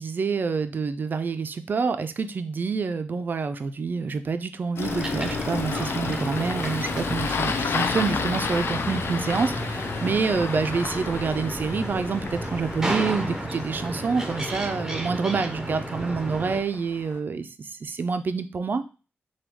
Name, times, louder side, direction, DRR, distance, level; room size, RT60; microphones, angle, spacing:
voice 1, 0.0-18.8, right 5 dB, 50° right, 10 dB, 0.4 m, -27 dB
Engine starting, 4.8-17.2, left 5 dB, 65° left, 0.4 m, -32 dB
sound 1, 4.8-16.6, right 1 dB, 15° right, 0.6 m, -33 dB
sound 2, 7.7-12.7, left 1 dB, 45° left, 1.5 m, -45 dB
5.9 x 2.3 x 3.5 m, 0.34 s
wide cardioid pair, 145°, 4 cm